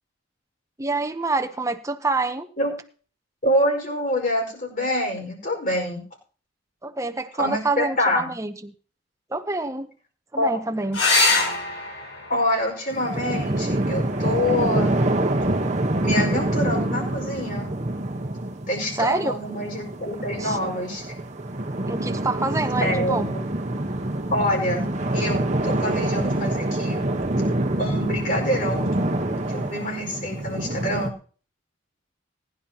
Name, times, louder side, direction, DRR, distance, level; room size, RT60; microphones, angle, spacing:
voice 1, 0.8-2.5 6.8-8.7 9.3-9.9 10.3-11.0 18.9-19.4 20.4-20.6 21.9-23.3, right 3 dB, 15° right, 7 dB, 0.8 m, -26 dB
voice 2, 3.4-6.0 7.4-8.2 10.4-10.6 12.3-15.0 16.0-17.7 18.7-21.0 22.8-23.5 24.3-24.9 25.1-27.0 27.8-28.9 29.5-31.1, left 1 dB, 45° left, 1 dB, 5.1 m, -26 dB
sound 1, 10.9-15.9 17.8-18.5 21.9-22.0 22.4-22.5, left 3 dB, 90° left, 5.1 m, -27 dB
sound 2, 12.9-31.1, right 1 dB, 35° right, 1.1 m, -26 dB
20.0 x 10.5 x 2.9 m, 0.41 s
head